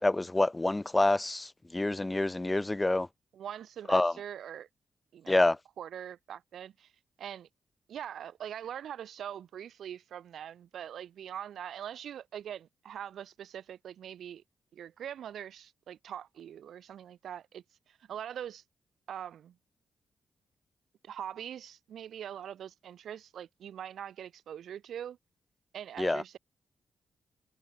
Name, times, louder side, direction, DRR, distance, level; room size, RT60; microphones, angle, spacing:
voice 1, 0.0-3.1 3.9-4.1 5.3-5.6 26.0-26.2, left 2 dB, 15° left, 1.0 m, -27 dB
voice 2, 3.3-4.7 5.1-5.4 5.8-6.9 7.2-7.5 7.9-14.4 14.7-18.6 19.1-19.5 21.0-25.2 25.7-26.4, right 9 dB, 80° right, 1.7 m, -42 dB
cardioid pair, 85°, 0 cm